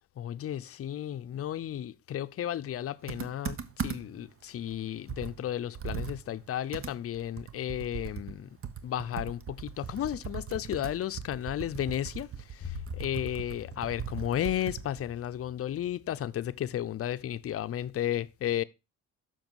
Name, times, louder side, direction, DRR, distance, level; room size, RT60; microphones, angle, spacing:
voice 1, 0.2-8.5 8.8-18.6, left 11 dB, 50° left, 0.6 m, -33 dB
Computer keyboard, 3.1-4.3 4.7-4.8 5.1-8.4 8.6-15.1, right 7 dB, 45° right, 0.9 m, -39 dB
7.2 x 5.9 x 4.5 m
cardioid pair, 90°, 30 cm